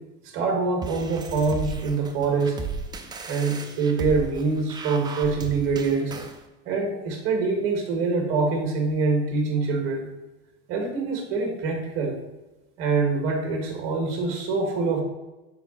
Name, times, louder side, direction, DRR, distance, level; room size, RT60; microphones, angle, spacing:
voice 1, 0.2-2.6 3.3-6.2 6.6-10.1 10.7-12.2 12.8-15.0, right 4 dB, 45° right, 2 dB, 1.7 m, -25 dB
sound 1, 0.8-6.4, right 4 dB, 15° right, 0.5 m, -35 dB
6.9 x 5.1 x 3.9 m, 1.1 s
supercardioid pair, 135°, 29 cm